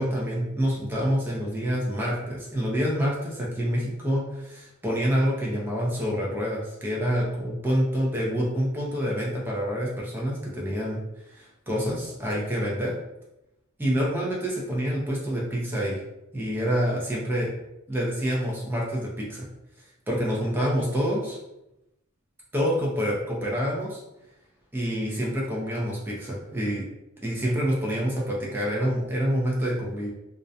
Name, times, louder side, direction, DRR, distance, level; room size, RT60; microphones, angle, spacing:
voice 1, 0.0-11.0 11.3-12.9 13.8-16.0 16.3-17.5 17.9-19.5 20.1-21.4 22.5-24.0 24.7-26.9 27.2-30.1, equal, 10° right, -4 dB, 0.4 m, -27 dB
2.4 x 2.1 x 2.6 m, 0.89 s
head